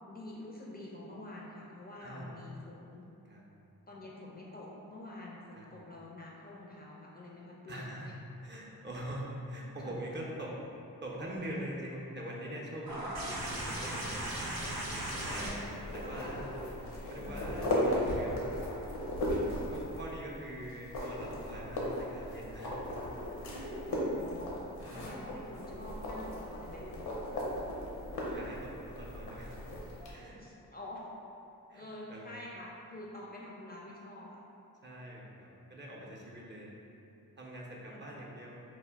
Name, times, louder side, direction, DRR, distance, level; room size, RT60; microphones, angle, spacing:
voice 1, 0.1-3.1 3.9-8.1 9.8-9.9 14.0-14.1 15.4-15.5 16.0-16.4 17.2-17.5 23.9-24.6 24.9-27.0 30.3-31.1 31.7-34.4 37.9-38.2, left 1 dB, 25° left, -4 dB, 0.4 m, -47 dB
voice 2, 7.7-8.1 8.4-10.5 11.0-14.2 15.2-15.7 15.9-16.5 17.1-18.5 19.7-22.7 23.5-23.7 24.8-25.1 28.3-29.5 30.0-30.4 31.7-32.3 34.8-36.8 37.4-38.6, right 1 dB, 30° right, -4 dB, 0.5 m, -43 dB
sound 1, 12.9-18.2 19.5-19.6, right 1 dB, 85° right, 0.6 m, -39 dB
sound 2, 13.4-30.1, left 1 dB, 80° left, 0.6 m, -37 dB
2.2 x 2.1 x 3.3 m, 2.7 s
supercardioid pair, 45°, 37 cm